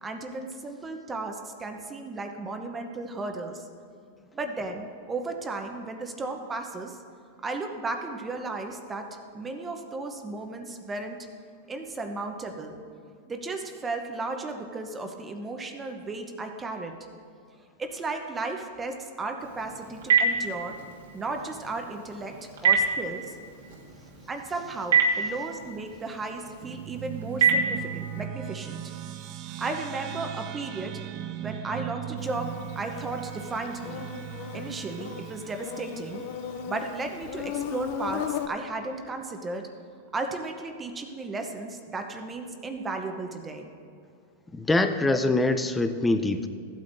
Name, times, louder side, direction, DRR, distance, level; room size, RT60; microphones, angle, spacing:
voice 1, 0.0-3.7 4.3-7.0 7.4-11.2 11.7-12.8 13.3-16.9 17.8-20.8 21.1-23.4 24.3-28.8 29.4-31.0 31.4-34.1 34.5-36.2 36.7-39.7 40.1-43.7 45.1-45.2, right 3 dB, 15° right, 5 dB, 0.8 m, -35 dB
Telephone, 19.4-28.3, right 5 dB, 80° right, 1.6 m, -28 dB
sound 1, 26.6-37.4, right 11 dB, 40° right, 0.5 m, -39 dB
Insect, 32.2-38.5, left 9 dB, 55° left, 0.6 m, -37 dB
voice 2, 44.5-46.5, left 2 dB, 10° left, 9 dB, 0.5 m, -24 dB
15.0 x 8.6 x 2.6 m, 2.4 s
hypercardioid pair, 125°, 0 cm